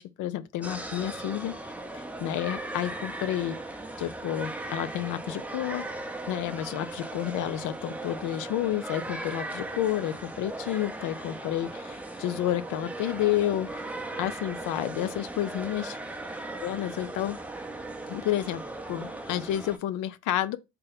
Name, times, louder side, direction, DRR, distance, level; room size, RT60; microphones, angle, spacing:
voice 1, 0.0-1.5 1.9-3.6 4.0-5.8 6.3-13.7 14.1-15.9 16.6-17.4 18.1-18.6 18.9-20.6, left 12 dB, 90° left, 0.5 m, -30 dB
sound 1, 0.6-19.8, right 2 dB, 5° right, 0.5 m, -38 dB
4.0 x 2.2 x 3.8 m
cardioid pair, 90°, 30 cm